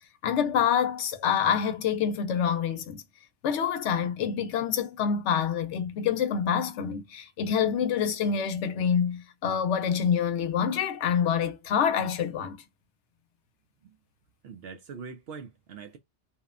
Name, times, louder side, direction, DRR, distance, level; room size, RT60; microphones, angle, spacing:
voice 1, 0.2-3.0 3.4-12.6, left 7 dB, 75° left, 0.9 m, -26 dB
voice 2, 14.4-16.0, right 5 dB, 65° right, 0.7 m, -43 dB
2.7 x 2.1 x 2.4 m
omnidirectional pair, 1.2 m